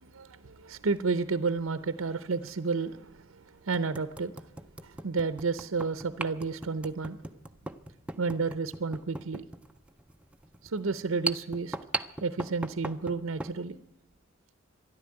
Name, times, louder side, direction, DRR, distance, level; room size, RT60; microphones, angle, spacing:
voice 1, 0.0-4.5 4.8-7.2 8.2-9.4 10.6-11.8 12.2-13.8, right 4 dB, 90° right, 13 dB, 0.7 m, -31 dB
sound 1, 0.7-1.0 2.4-2.5 3.1-3.2 3.7-13.6, right 2 dB, 5° right, 0.6 m, -39 dB
13.5 x 11.5 x 9.5 m, 0.92 s
head